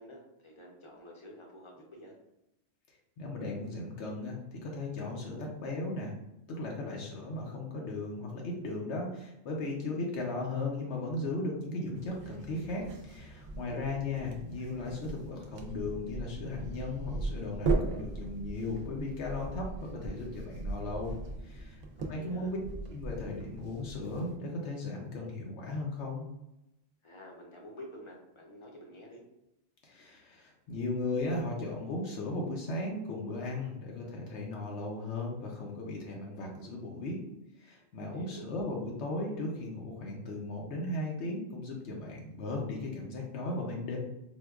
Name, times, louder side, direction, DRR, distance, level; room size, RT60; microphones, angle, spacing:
voice 1, 0.0-2.1 13.7-14.4 22.0-22.5 27.0-29.2 38.0-38.5, left 1 dB, 35° left, -1 dB, 0.6 m, -49 dB
voice 2, 2.9-6.1 6.5-21.8 22.1-22.6 22.9-26.3 29.8-37.2 37.6-44.0, left 2 dB, 90° left, -1 dB, 1.0 m, -36 dB
sound 1, 11.9-24.4, right 3 dB, 65° right, 0.7 m, -38 dB
4.4 x 2.2 x 2.3 m, 0.88 s
omnidirectional pair, 1.1 m